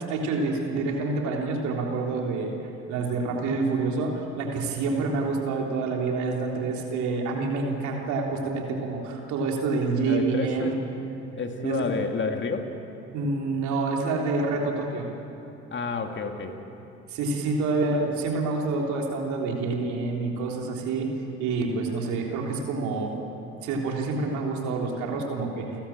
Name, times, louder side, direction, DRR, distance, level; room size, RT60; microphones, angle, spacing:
voice 1, 0.0-2.5 2.9-10.8 11.6-11.8 13.1-15.1 17.1-21.1 21.4-23.1 23.6-25.8, right 3 dB, 65° right, 0 dB, 3.5 m, -27 dB
voice 2, 10.0-10.7 11.4-12.7 15.7-16.6, left 4 dB, 35° left, 5 dB, 2.3 m, -29 dB
29.5 x 13.0 x 8.8 m, 2.9 s
hypercardioid pair, 55°, 31 cm